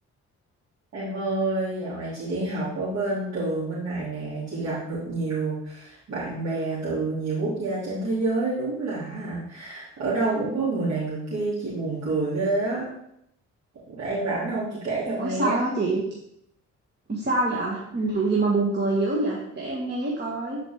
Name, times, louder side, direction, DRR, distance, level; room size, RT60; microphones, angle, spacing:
voice 1, 0.9-12.9 13.9-15.6, right 2 dB, 60° right, -10 dB, 3.0 m, -28 dB
voice 2, 15.1-16.0 17.1-20.6, right 2 dB, 35° right, -4 dB, 1.7 m, -25 dB
10.0 x 5.0 x 3.6 m, 0.77 s
cardioid pair, 90°, 30 cm